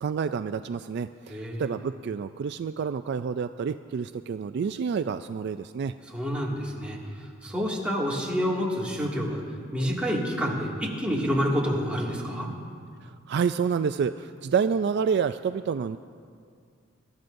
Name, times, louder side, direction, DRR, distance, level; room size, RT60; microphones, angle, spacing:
voice 1, 0.0-5.9 13.3-16.0, right 6 dB, 55° right, 11 dB, 0.3 m, -28 dB
voice 2, 1.3-1.7 6.1-7.0 7.4-9.4 9.7-12.5, equal, 5° right, -5 dB, 2.1 m, -28 dB
25.5 x 13.5 x 2.6 m, 2.2 s
head